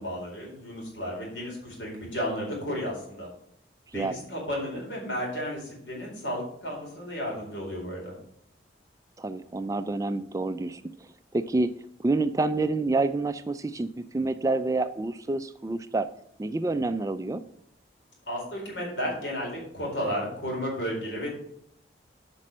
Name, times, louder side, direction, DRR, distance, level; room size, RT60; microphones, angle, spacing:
voice 1, 0.0-3.3 3.9-8.2 18.3-21.3, equal, 80° left, -2 dB, 4.3 m, -33 dB
voice 2, 9.2-10.8 11.3-11.7 12.0-16.1 16.4-17.4, right 2 dB, 15° right, 11 dB, 0.3 m, -28 dB
8.4 x 5.3 x 6.1 m, 0.70 s
head